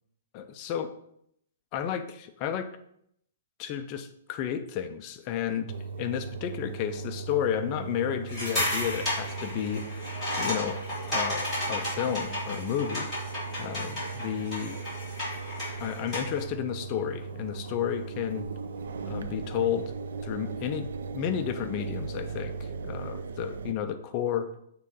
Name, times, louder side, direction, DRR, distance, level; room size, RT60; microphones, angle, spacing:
voice 1, 0.3-0.9 1.7-2.7 3.6-5.7 6.0-10.1 10.4-10.8 11.1-13.1 13.6-14.8 15.8-18.5 19.1-19.9 20.2-24.5, left 9 dB, 20° left, 8 dB, 0.4 m, -32 dB
Engine, 5.7-23.7, right 4 dB, 70° right, 0.5 m, -38 dB
sound 1, 8.3-16.4, left 1 dB, 5° right, 2.8 m, -33 dB
6.7 x 3.6 x 5.4 m, 0.74 s
hypercardioid pair, 180°, 0 cm